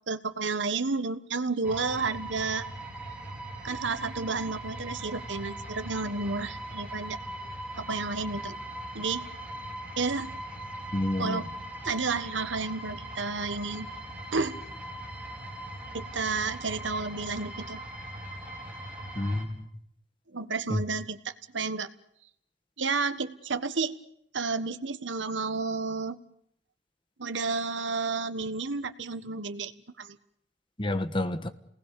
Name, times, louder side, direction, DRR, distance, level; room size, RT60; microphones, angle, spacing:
voice 1, 0.1-2.6 3.6-7.2 7.8-8.5 8.9-9.3 10.0-10.3 11.2-11.5 11.8-13.9 14.3-14.6 15.9-17.8 20.3-21.9 22.8-23.9 24.3-26.2 27.2-29.7 30.0-30.2, right 4 dB, 85° right, 11 dB, 1.5 m, -31 dB
sound 1, 1.6-19.5, right 1 dB, 10° right, 5.0 m, -40 dB
voice 2, 10.9-11.4 19.1-19.7 20.7-20.8 30.8-31.5, left 1 dB, 25° left, 10 dB, 1.5 m, -29 dB
29.0 x 19.5 x 7.0 m, 0.73 s
head